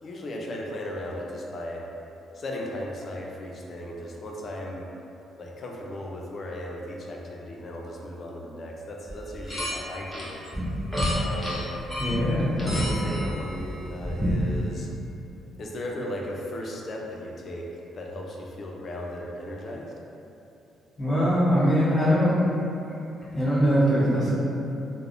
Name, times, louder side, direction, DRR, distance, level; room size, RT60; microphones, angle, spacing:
voice 1, 0.0-1.8 2.3-4.9 5.4-10.4 11.1-11.8 12.6-14.9 15.6-19.9, left 1 dB, 50° left, -1 dB, 0.4 m, -36 dB
sound 1, 9.1-9.8 10.1-14.6, equal, 5° left, 0.8 m, -28 dB
voice 2, 12.0-12.5 21.0-22.4 23.3-24.4, equal, 25° left, -10 dB, 1.2 m, -22 dB
3.3 x 2.0 x 2.4 m, 2.8 s
cardioid pair, 90°, 0 cm